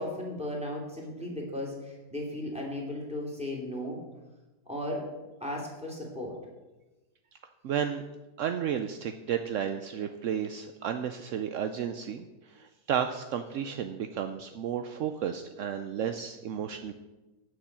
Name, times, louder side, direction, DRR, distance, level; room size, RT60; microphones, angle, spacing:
voice 1, 0.0-4.0 4.7-5.0 5.4-6.4 16.8-16.9, left 1 dB, 5° right, -2 dB, 2.6 m, -36 dB
voice 2, 7.6-8.0 8.4-12.3 12.5-16.9, right 8 dB, 70° right, 7 dB, 0.7 m, -32 dB
9.4 x 6.7 x 7.4 m, 1.1 s
omnidirectional pair, 1.9 m